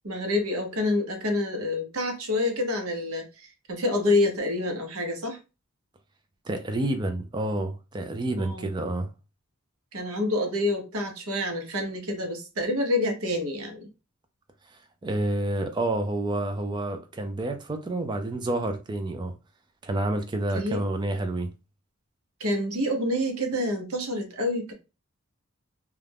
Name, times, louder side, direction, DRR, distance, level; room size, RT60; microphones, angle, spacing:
voice 1, 0.0-5.4 8.4-8.7 9.9-13.8 20.5-20.8 22.4-24.7, left 1 dB, 75° right, 0.8 m, -27 dB
voice 2, 6.5-9.1 14.7-19.3 19.8-21.5, right 2 dB, 20° right, 0.3 m, -29 dB
2.4 x 2.1 x 3.3 m
head